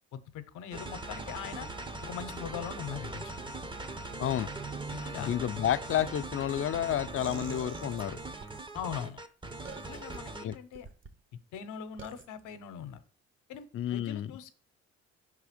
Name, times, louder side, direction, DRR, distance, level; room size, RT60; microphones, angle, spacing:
voice 1, 0.1-1.7 2.0-3.3 4.9-5.4 8.7-9.2 9.8-10.9 11.3-13.0 13.5-14.5, left 8 dB, 85° left, 0.7 m, -41 dB
sound 1, 0.7-10.6, right 2 dB, 15° right, 0.6 m, -41 dB
sound 2, 2.4-6.8, right 5 dB, 80° right, 1.1 m, -49 dB
voice 2, 5.2-8.2 10.4-10.5 13.7-14.3, left 11 dB, 45° left, 0.4 m, -30 dB
sound 3, 7.2-8.6 9.6-10.2 10.7-11.1 12.0-12.3, right 4 dB, 40° right, 0.9 m, -45 dB
5.5 x 3.5 x 5.0 m
cardioid pair, 90°, 30 cm